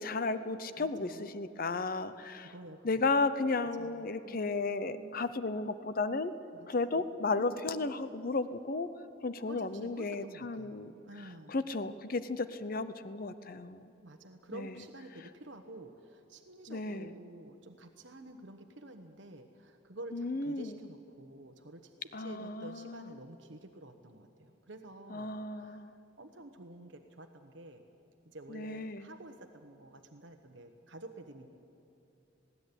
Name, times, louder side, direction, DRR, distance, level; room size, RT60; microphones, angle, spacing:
voice 1, 0.0-2.5 2.8-6.3 6.7-8.9 9.2-10.9 11.2-13.9 14.5-14.7 16.7-17.1 20.1-20.7 22.1-23.1 25.1-25.9 28.5-29.1, left 3 dB, 50° left, 13 dB, 0.7 m, -34 dB
voice 2, 0.8-1.3 2.4-5.3 6.5-8.1 9.4-11.6 14.0-27.8 28.3-31.5, right 1 dB, 70° right, 6 dB, 1.1 m, -50 dB
19.5 x 16.5 x 9.9 m, 2.9 s
head